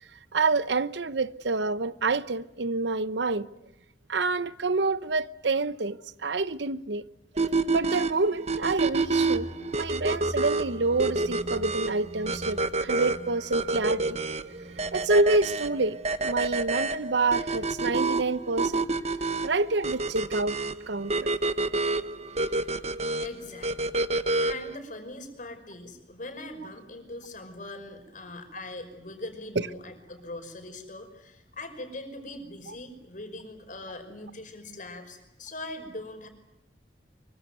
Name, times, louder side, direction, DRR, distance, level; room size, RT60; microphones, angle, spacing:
voice 1, 0.3-3.5 4.1-7.0 7.7-14.2 14.9-18.8 19.4-20.6 20.9-21.3 29.6-29.7 32.7-32.8, right 3 dB, 80° right, 0.9 m, -27 dB
sound 1, 7.4-24.8, right 3 dB, 40° right, 1.0 m, -28 dB
sound 2, 8.9-16.6, right 1 dB, 15° right, 2.8 m, -44 dB
voice 2, 23.2-24.0 24.4-36.3, left 2 dB, 50° left, 5.4 m, -41 dB
24.5 x 24.0 x 9.3 m
head